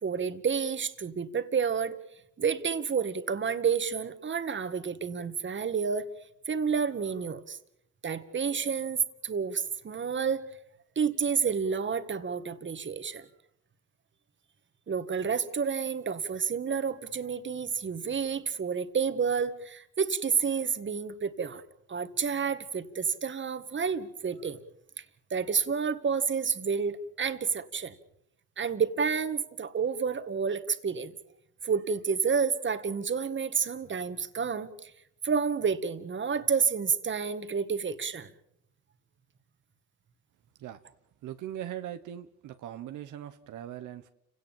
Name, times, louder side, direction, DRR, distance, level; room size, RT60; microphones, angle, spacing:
voice 1, 0.0-2.0 2.4-6.1 6.5-7.6 8.0-10.4 11.0-13.3 14.9-21.6 21.9-24.6 25.3-27.9 28.6-31.1 31.6-34.9 35.2-38.3, right 6 dB, 40° right, 10 dB, 1.9 m, -30 dB
voice 2, 41.2-44.1, right 11 dB, 80° right, 9 dB, 1.2 m, -40 dB
30.0 x 17.5 x 7.3 m, 0.77 s
cardioid pair, 90°, 30 cm